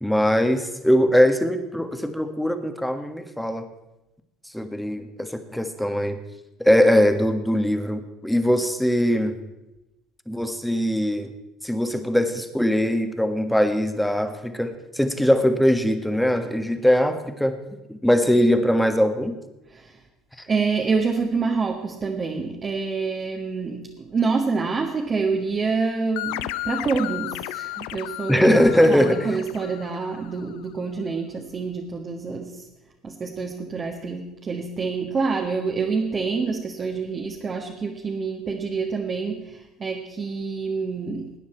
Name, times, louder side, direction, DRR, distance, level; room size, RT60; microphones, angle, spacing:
voice 1, 0.0-3.7 4.5-6.2 6.6-9.4 10.3-11.3 11.6-17.6 17.9-19.4 28.3-29.4, equal, 5° left, 8 dB, 1.5 m, -21 dB
voice 2, 20.5-32.6 33.0-41.3, right 4 dB, 35° right, 0 dB, 1.6 m, -27 dB
sound 1, 26.2-30.5, left 17 dB, 70° left, 0.4 m, -34 dB
19.0 x 9.4 x 4.5 m, 0.99 s
hypercardioid pair, 65°, 0 cm